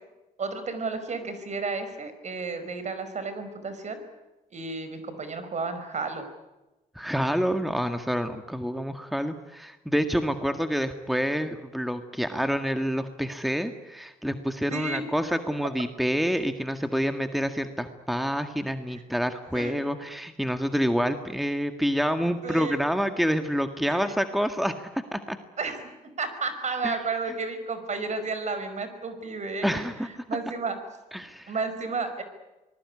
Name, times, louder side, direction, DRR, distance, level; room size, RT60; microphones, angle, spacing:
voice 1, 0.4-4.0 4.5-6.3 14.7-15.0 19.5-19.8 22.4-22.8 23.9-24.1 25.6-25.8 26.2-29.9 30.3-30.8 31.5-32.2, right 4 dB, 50° right, 10 dB, 5.3 m, -32 dB
voice 2, 7.0-25.4 26.8-27.0 29.6-30.1 31.1-31.5, equal, ahead, 7 dB, 1.9 m, -28 dB
25.5 x 20.0 x 9.8 m, 1.0 s
supercardioid pair, 65°, 15 cm